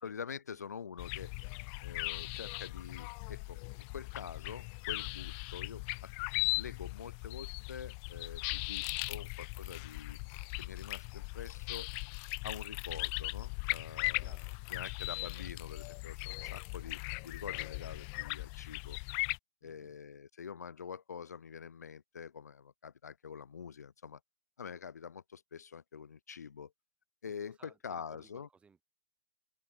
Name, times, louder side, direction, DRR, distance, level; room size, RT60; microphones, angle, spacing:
voice 1, 0.0-1.3 1.8-3.6 3.9-6.1 6.6-10.2 10.6-11.9 12.4-14.4 14.7-19.0 19.6-24.2 24.6-26.7 27.2-28.5, left 7 dB, 75° left, 1.0 m, -46 dB
sound 1, 1.0-19.4, left 40 dB or more, 35° left, 0.4 m, -39 dB
voice 2, 14.2-14.6 19.6-20.0 27.2-28.8, right 5 dB, 15° right, 2.8 m, -63 dB
hypercardioid pair, 115°, 9 cm